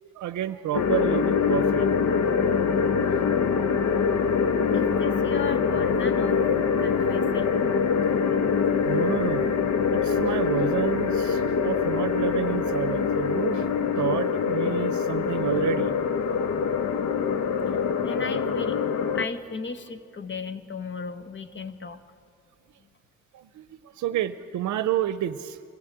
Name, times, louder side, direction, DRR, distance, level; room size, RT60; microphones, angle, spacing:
voice 1, 0.0-1.9 4.5-4.6 8.8-9.5 9.9-15.9 23.3-25.6, right 11 dB, 70° right, 12 dB, 0.7 m, -30 dB
sound 1, 0.7-19.3, left 6 dB, 60° left, 0.9 m, -24 dB
voice 2, 4.7-6.4 6.8-7.6 8.0-8.2 17.7-18.8 19.1-22.0, left 4 dB, 40° left, 11 dB, 1.3 m, -35 dB
24.0 x 14.5 x 9.0 m, 2.4 s
cardioid pair, 90°, 30 cm